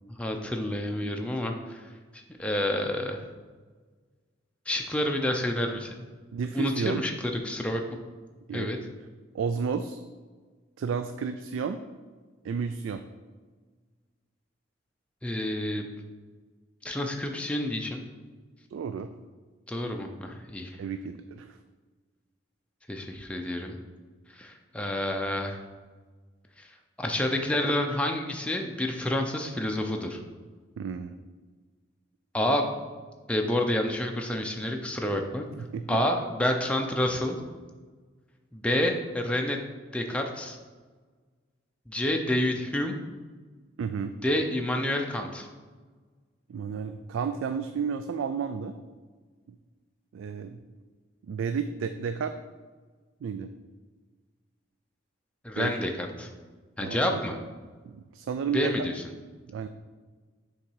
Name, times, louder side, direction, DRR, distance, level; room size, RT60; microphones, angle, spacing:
voice 1, 0.2-3.2 4.7-6.0 6.5-7.8 8.5-8.8 15.2-15.8 16.8-18.0 19.7-20.8 22.9-23.8 24.3-25.6 26.6-26.7 27.0-30.2 32.3-32.8 33.3-35.5 35.9-37.4 38.5-39.6 39.9-40.6 41.9-43.0 44.2-45.5 55.4-56.3 56.8-57.4 58.5-58.9, left 1 dB, 5° left, 2 dB, 0.5 m, -29 dB
voice 2, 6.3-7.0 8.5-8.9 9.3-10.0 10.8-11.8 12.4-13.0 18.7-19.1 20.8-21.6 30.8-31.2 35.6-36.0 43.8-44.2 46.5-48.7 50.1-50.6 51.3-52.4 53.2-53.5 55.6-55.8 56.8-57.2 57.8-58.9 59.5-59.7, right 6 dB, 80° right, 9 dB, 0.3 m, -32 dB
7.0 x 3.8 x 4.6 m, 1.4 s
head